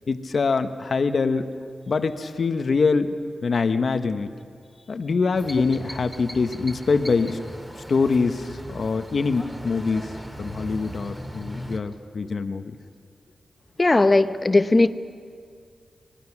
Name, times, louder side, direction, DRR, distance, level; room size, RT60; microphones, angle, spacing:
voice 1, 0.1-1.5 1.9-3.1 3.4-4.3 4.9-7.4 7.9-10.1 10.4-12.7, left 4 dB, 60° left, 9 dB, 1.0 m, -24 dB
sound 1, 5.3-11.8, right 1 dB, 10° right, 2.3 m, -38 dB
voice 2, 13.8-14.9, left 2 dB, 30° left, 11 dB, 0.8 m, -18 dB
24.5 x 20.0 x 6.0 m, 2.2 s
cardioid pair, 70°, 0 cm